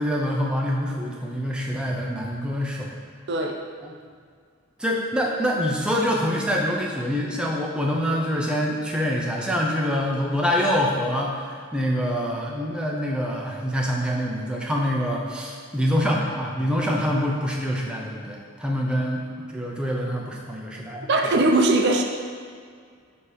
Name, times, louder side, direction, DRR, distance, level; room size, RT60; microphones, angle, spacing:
voice 1, 0.0-2.9 3.8-3.9 4.8-11.3 11.7-21.3, equal, 5° right, -2 dB, 0.6 m, -25 dB
voice 2, 3.3-3.6 21.1-22.0, right 2 dB, 55° right, 3 dB, 0.4 m, -20 dB
6.9 x 2.9 x 4.9 m, 2.1 s
head